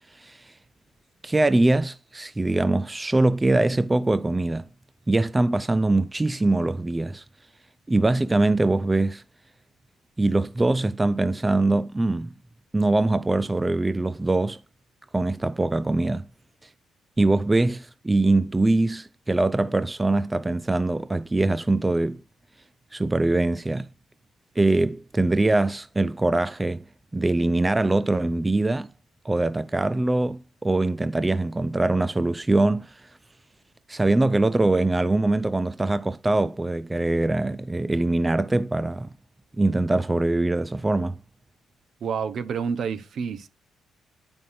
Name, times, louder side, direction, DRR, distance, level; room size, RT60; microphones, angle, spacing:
voice 1, 0.1-0.5 1.2-4.7 5.1-7.2 7.9-9.2 10.2-12.3 12.7-14.6 15.1-16.3 16.6-16.7 17.2-22.2 22.9-23.9 24.6-26.8 27.1-28.9 29.2-33.0 33.9-39.1 39.6-41.2, right 2 dB, 20° right, 0.3 m, -23 dB
voice 2, 42.0-43.5, right 6 dB, 60° right, 0.8 m, -29 dB
9.5 x 5.2 x 2.5 m
hypercardioid pair, 55°, 0 cm